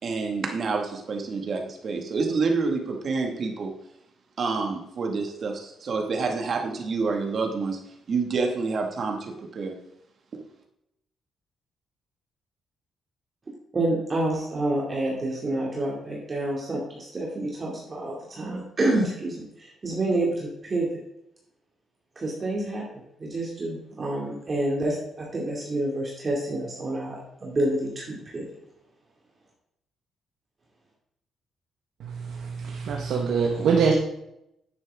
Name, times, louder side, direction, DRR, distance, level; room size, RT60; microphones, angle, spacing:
voice 1, 0.0-3.7 4.4-7.8 8.1-9.8, right 4 dB, 50° right, 3 dB, 2.0 m, -28 dB
voice 2, 13.7-21.0 22.2-22.8 23.2-28.4, right 1 dB, 35° right, -3 dB, 2.7 m, -28 dB
voice 3, 32.0-33.9, right 5 dB, 70° right, 0 dB, 1.5 m, -24 dB
10.5 x 9.1 x 3.8 m, 0.81 s
cardioid pair, 90°, 0 cm